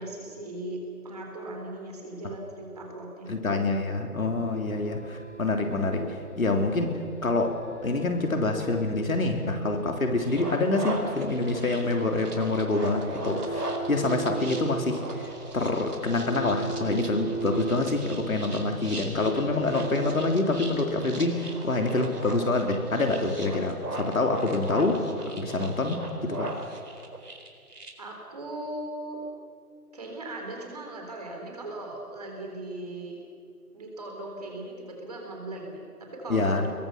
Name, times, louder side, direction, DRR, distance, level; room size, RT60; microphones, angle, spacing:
voice 1, 0.0-3.4 25.9-26.0 26.3-26.5 28.0-29.2 29.9-33.2 33.7-36.6, right 1 dB, 25° right, 1 dB, 3.9 m, -38 dB
voice 2, 3.3-6.1 6.4-7.6 7.8-25.0 25.4-26.5 36.3-36.7, left 2 dB, 65° left, 3 dB, 3.5 m, -26 dB
sound 1, 4.4-21.1, right 3 dB, 50° left, 2.2 m, -39 dB
sound 2, 10.2-27.9, right 1 dB, 85° right, 4.5 m, -39 dB
28.5 x 22.0 x 5.9 m, 2.3 s
figure-of-eight pair, 170°, 45 cm